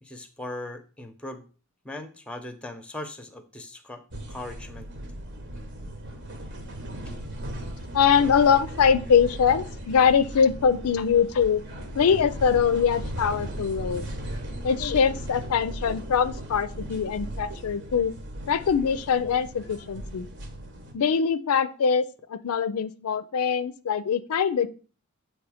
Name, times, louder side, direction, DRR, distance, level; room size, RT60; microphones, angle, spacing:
voice 1, 0.0-1.4 1.8-4.0 4.3-4.9, left 1 dB, 5° left, 9 dB, 0.6 m, -39 dB
sound 1, 4.1-20.9, right 1 dB, 55° right, 1.1 m, -37 dB
voice 2, 7.9-11.6 12.0-14.1 14.6-18.1 18.5-20.3 20.9-24.7, left 7 dB, 85° left, 14 dB, 0.4 m, -23 dB
7.4 x 3.2 x 4.9 m, 0.37 s
head